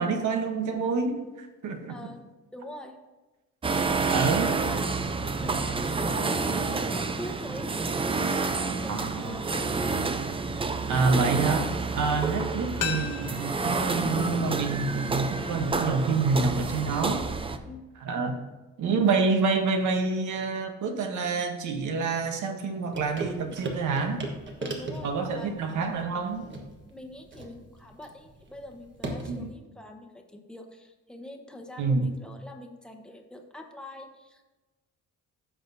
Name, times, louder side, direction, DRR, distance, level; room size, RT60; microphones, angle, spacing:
voice 1, 0.0-2.1 4.1-4.5 8.9-9.4 10.9-17.3 18.0-18.4 18.8-24.2 25.0-26.5 29.3-29.5 31.8-32.1, right 4 dB, 65° right, 5 dB, 1.1 m, -27 dB
voice 2, 1.9-2.2 2.5-3.0 3.8-4.2 4.6-4.9 5.4-7.9 8.2-9.5 17.6-17.8 24.6-25.5 26.9-34.5, left 1 dB, 5° left, 2 dB, 1.0 m, -44 dB
sound 1, 3.6-17.6, right 4 dB, 15° right, 0.4 m, -29 dB
sound 2, 12.8-15.6 15.9-16.0, left 8 dB, 75° left, 1.2 m, -38 dB
sound 3, 22.9-29.5, right 2 dB, 35° right, 1.3 m, -38 dB
15.5 x 6.2 x 2.7 m, 1.1 s
cardioid pair, 130°, 31 cm